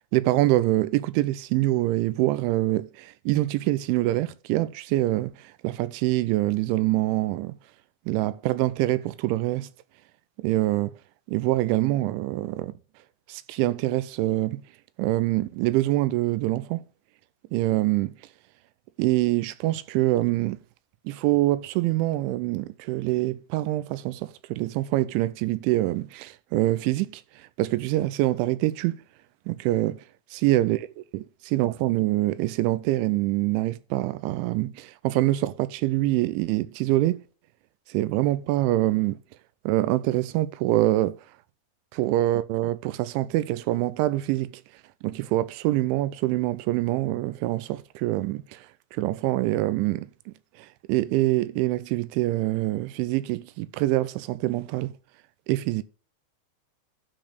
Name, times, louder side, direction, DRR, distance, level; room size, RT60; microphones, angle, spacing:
voice 1, 0.1-7.6 8.1-9.7 10.4-11.0 11.3-12.7 13.3-14.6 15.0-16.8 17.5-18.1 19.0-20.6 21.1-29.0 29.5-30.0 30.4-30.8 31.1-37.2 37.9-39.2 39.7-41.2 42.0-44.5 45.0-48.7 48.9-50.1 50.6-54.9 55.5-55.8, right 17 dB, 85° right, 3.0 m, -25 dB
12.0 x 4.1 x 6.6 m
omnidirectional pair, 5.4 m